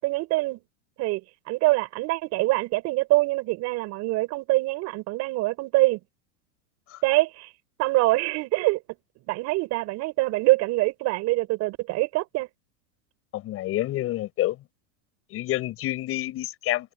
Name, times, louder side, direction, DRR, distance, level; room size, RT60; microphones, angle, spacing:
voice 1, 0.0-0.6 1.0-1.2 1.5-6.0 7.0-7.5 7.8-8.8 9.3-12.5, right 20 dB, 45° right, 6.1 m, -24 dB
voice 2, 13.3-14.6 15.3-16.9, left 15 dB, 35° left, 6.4 m, -28 dB
supercardioid pair, 140°, 37 cm